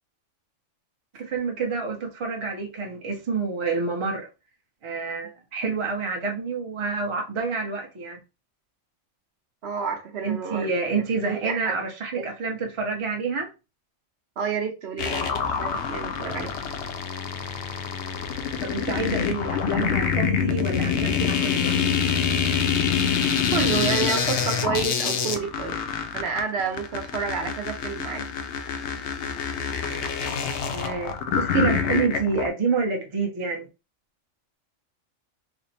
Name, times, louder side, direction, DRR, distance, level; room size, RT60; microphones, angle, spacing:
voice 1, 1.1-4.3 4.8-8.2 10.2-13.5 18.6-21.8 30.7-33.7, right 4 dB, 30° right, 0.6 m, -28 dB
voice 2, 9.6-10.7 11.2-11.7 12.2-12.3 14.4-16.5 23.5-25.8 26.1-28.2, right 6 dB, 60° right, 0.9 m, -29 dB
sound 1, 15.0-32.5, left 7 dB, 65° left, 0.8 m, -26 dB
3.4 x 2.1 x 4.0 m
omnidirectional pair, 1.3 m